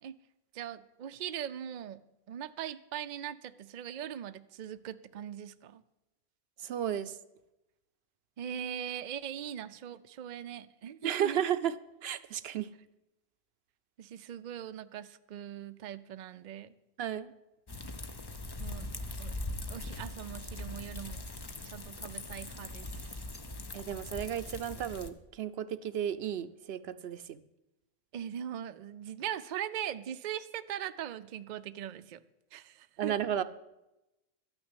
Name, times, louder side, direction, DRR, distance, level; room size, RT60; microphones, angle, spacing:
voice 1, 0.5-2.0 2.3-5.8 8.4-11.4 14.0-16.7 18.6-18.9 19.2-19.4 19.7-21.2 21.6-22.9 28.1-32.2 32.5-33.2, right 10 dB, 55° right, 11 dB, 0.6 m, -40 dB
voice 2, 6.6-7.2 11.0-11.7 12.0-12.7 17.0-17.3 23.7-27.4 33.0-33.4, right 9 dB, 80° right, 12 dB, 0.9 m, -33 dB
sound 1, 17.7-25.1, left 2 dB, 25° left, 0.7 m, -41 dB
13.0 x 6.2 x 9.8 m, 0.95 s
omnidirectional pair, 1.0 m